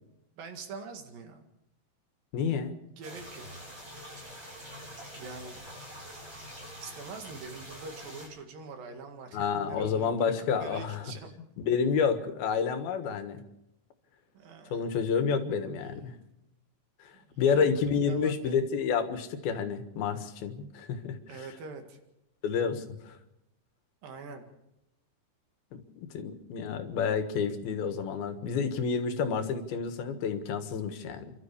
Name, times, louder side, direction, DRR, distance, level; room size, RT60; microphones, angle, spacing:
voice 1, 0.4-1.5 3.0-3.6 5.2-5.7 6.8-10.3 10.6-11.3 14.3-14.9 15.8-16.3 17.1-18.6 21.3-22.0 24.0-24.4, right 4 dB, 70° right, 5 dB, 3.7 m, -44 dB
voice 2, 2.3-2.8 9.3-11.1 11.6-13.4 14.7-16.1 17.4-21.2 22.4-23.2 25.7-31.3, left 6 dB, 90° left, 9 dB, 3.4 m, -29 dB
sound 1, 3.0-8.3, equal, 30° right, 8.5 m, -45 dB
29.0 x 13.0 x 7.0 m, 0.88 s
omnidirectional pair, 4.2 m